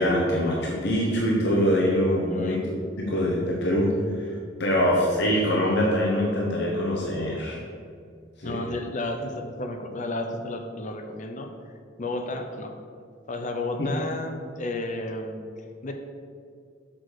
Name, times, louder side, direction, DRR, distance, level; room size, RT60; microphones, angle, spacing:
voice 1, 0.0-2.6 3.0-3.9 4.1-4.3 4.6-7.6 8.4-8.6 13.8-13.9, equal, 65° left, -3 dB, 1.1 m, -24 dB
voice 2, 8.4-11.5 12.0-12.7 13.3-15.4 15.8-15.9, left 2 dB, 40° left, 5 dB, 0.7 m, -32 dB
6.2 x 4.8 x 6.4 m, 2.2 s
head